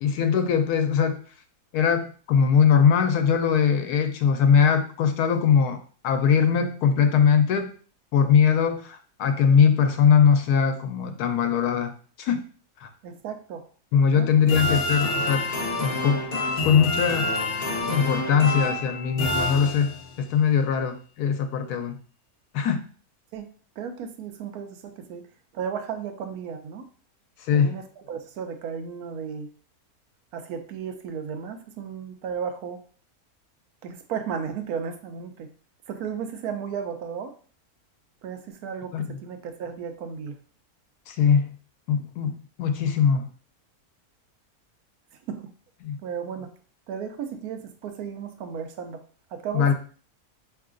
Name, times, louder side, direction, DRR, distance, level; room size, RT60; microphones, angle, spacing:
voice 1, 0.0-1.2 1.7-5.8 6.0-7.7 8.1-11.9 12.2-12.4 12.8-12.9 13.9-15.4 15.8-16.2 16.6-17.3 17.8-22.0 22.5-22.8 27.5-27.8 38.9-39.0 41.1-41.5 41.9-43.3 45.8-46.0 49.5-49.7, left 7 dB, 85° left, 7 dB, 1.2 m, -21 dB
voice 2, 13.0-13.6 14.1-14.3 23.3-23.5 23.8-25.2 25.5-26.8 27.5-29.5 30.3-32.8 33.8-35.5 35.9-37.3 38.2-40.3 45.3-45.5 46.0-46.5 46.9-49.0 49.3-49.7, right 7 dB, 75° right, 8 dB, 1.1 m, -34 dB
sound 1, 14.5-20.2, left 2 dB, 35° left, 0.9 m, -27 dB
4.6 x 3.2 x 2.5 m, 0.42 s
omnidirectional pair, 1.6 m